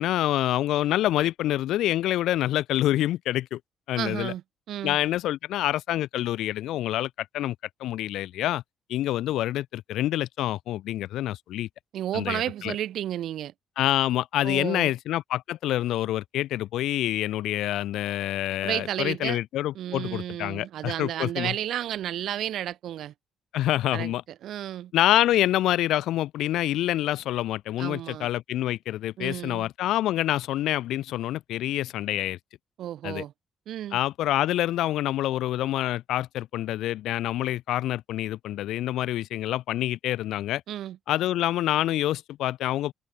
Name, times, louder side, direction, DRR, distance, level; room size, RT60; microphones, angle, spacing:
voice 1, 0.0-3.6 3.9-4.3 4.8-7.6 7.8-8.6 8.9-11.7 12.1-12.7 13.8-21.5 23.5-24.2 24.9-32.4 33.0-33.2 33.9-40.6 41.1-42.9, left 14 dB, 85° left, 2.1 m, -27 dB
voice 2, 4.0-4.4 4.7-5.0 11.9-13.5 14.4-14.9 18.6-19.4 19.7-23.1 23.9-24.1 24.4-24.9 27.8-28.3 29.2-29.7 32.8-33.3 33.7-34.0 40.7-41.0, right 11 dB, 75° right, 2.2 m, -32 dB
cardioid pair, 90°, 0 cm